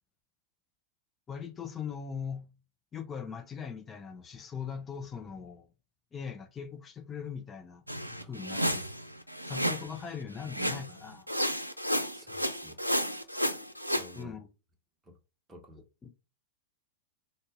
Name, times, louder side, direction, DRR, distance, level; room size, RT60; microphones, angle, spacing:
voice 1, 1.3-2.5 2.9-5.7 6.1-7.8 8.3-8.8 9.5-11.3 14.2-14.5 16.0-16.1, left 6 dB, 20° left, 0.7 m, -40 dB
sound 1, 7.9-10.0 10.5-11.0 11.3-14.1, equal, 90° right, 0.5 m, -32 dB
voice 2, 8.1-8.5 12.1-12.8 13.8-14.4 15.0-15.2 15.5-15.8, left 1 dB, 15° right, 1.2 m, -52 dB
3.9 x 2.7 x 3.6 m
figure-of-eight pair, 90°, 0 cm